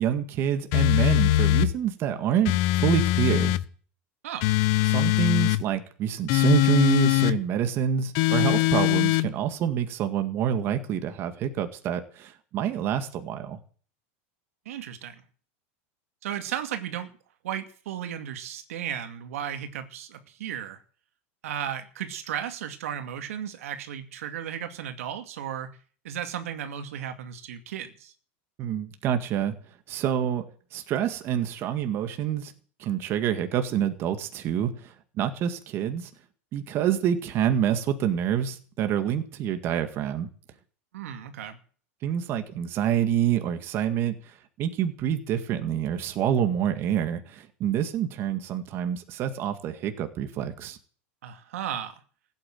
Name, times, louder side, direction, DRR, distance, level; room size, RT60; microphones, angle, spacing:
voice 1, 0.0-3.6 4.9-13.6 28.6-29.5 29.9-30.4 30.7-32.5 32.8-36.1 36.5-40.3 42.0-50.8, right 9 dB, 35° right, 8 dB, 1.9 m, -27 dB
sound 1, 0.7-1.7 2.5-3.6 4.4-5.6 6.3-7.4 8.2-9.3, left 17 dB, 45° left, 1.0 m, -22 dB
voice 2, 14.7-15.2 16.2-17.1 17.4-20.8 21.4-25.8 26.0-28.1 40.9-41.6 51.2-52.0, right 9 dB, 90° right, 8 dB, 2.4 m, -35 dB
16.0 x 9.0 x 9.3 m, 0.43 s
supercardioid pair, 160°, 7 cm